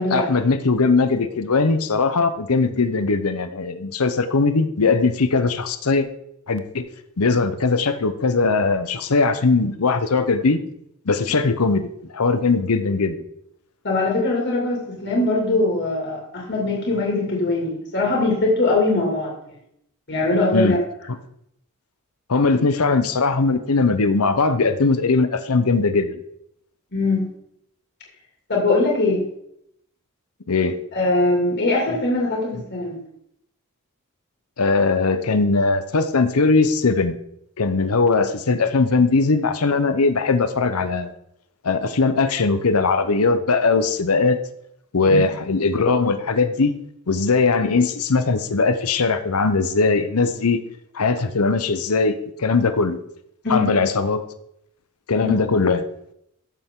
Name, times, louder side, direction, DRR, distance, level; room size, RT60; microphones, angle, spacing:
voice 1, 0.1-6.1 6.5-6.9 7.2-10.6 11.1-11.9 12.1-13.2 20.5-20.8 22.3-26.2 30.5-30.8 34.6-37.2 37.6-41.1 41.6-44.4 44.9-46.8 47.1-50.6 50.9-53.0 53.5-54.2 55.1-55.8, left 4 dB, 85° left, 10 dB, 0.8 m, -20 dB
voice 2, 13.8-19.6 20.1-20.8 26.9-27.2 28.5-29.3 30.9-33.0 45.1-45.2 53.4-53.7 55.2-55.3, left 2 dB, 50° left, -2 dB, 2.5 m, -21 dB
13.5 x 6.8 x 3.8 m, 0.75 s
head